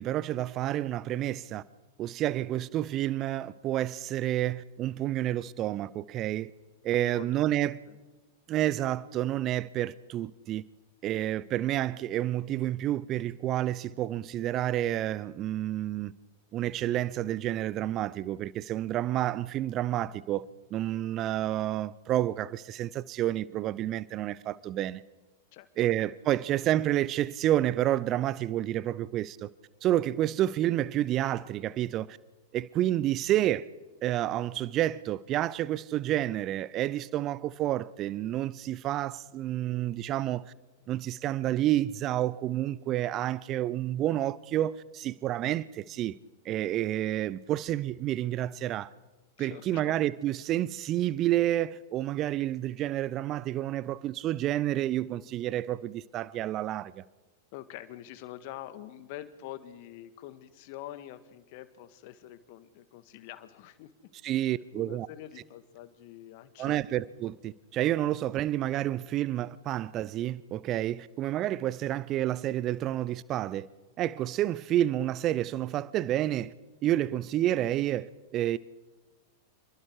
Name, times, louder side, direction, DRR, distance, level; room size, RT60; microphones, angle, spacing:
voice 1, 0.0-1.6 2.0-6.5 6.8-7.8 8.5-10.6 11.0-16.1 16.5-20.4 20.7-25.0 25.8-29.5 29.8-32.2 32.5-33.7 34.0-40.5 40.9-46.2 46.4-48.9 49.4-57.0 64.2-65.1 66.6-73.7 74.0-76.5 76.8-78.6, right 13 dB, 35° right, 0.6 m, -29 dB
voice 2, 7.0-7.3 7.5-8.0 25.5-25.9 49.4-50.0 57.5-63.9 64.7-66.8, left 13 dB, 50° left, 1.8 m, -45 dB
28.0 x 22.0 x 4.8 m
figure-of-eight pair, 95°, 0 cm